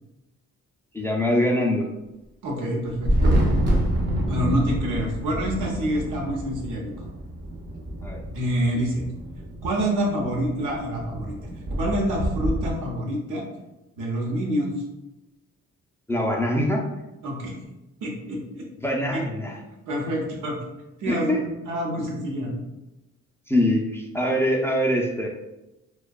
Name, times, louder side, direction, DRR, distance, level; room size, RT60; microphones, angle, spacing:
voice 1, 0.9-1.9 8.0-8.2 16.1-16.8 18.8-19.6 20.0-20.2 21.1-21.4 23.5-25.3, left 1 dB, 10° left, -1 dB, 0.3 m, -23 dB
voice 2, 2.4-3.4 4.3-6.9 8.3-9.0 9.6-11.3 11.8-13.4 14.0-14.7 17.2-17.5 18.0-18.6 19.1-19.2 19.9-20.6 21.0-22.6, equal, 90° right, -2 dB, 0.8 m, -27 dB
Thunder, 2.9-12.7, equal, 35° right, 0.6 m, -27 dB
2.6 x 2.2 x 2.2 m, 0.99 s
cardioid pair, 90°, 30 cm